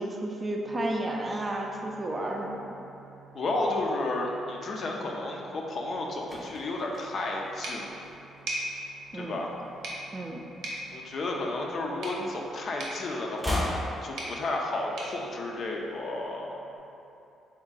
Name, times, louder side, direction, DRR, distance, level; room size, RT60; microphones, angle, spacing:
voice 1, 0.0-2.6 9.1-9.4 10.1-10.4, right 1 dB, 30° right, 0 dB, 0.4 m, -32 dB
sound 1, 0.6-16.8, right 4 dB, 85° left, 0.7 m, -55 dB
voice 2, 3.3-7.9 9.1-9.5 10.9-13.7 14.0-16.5, left 2 dB, 55° left, 0 dB, 0.4 m, -32 dB
sound 2, 5.9-8.6 8.8-9.1 9.4-10.9 11.2-12.5 12.8-14.9 15.1-15.2, left 1 dB, 5° right, 0.7 m, -38 dB
sound 3, 7.6-16.3, right 1 dB, 80° right, 0.6 m, -41 dB
3.6 x 2.1 x 3.9 m, 2.8 s
cardioid pair, 90°, 0 cm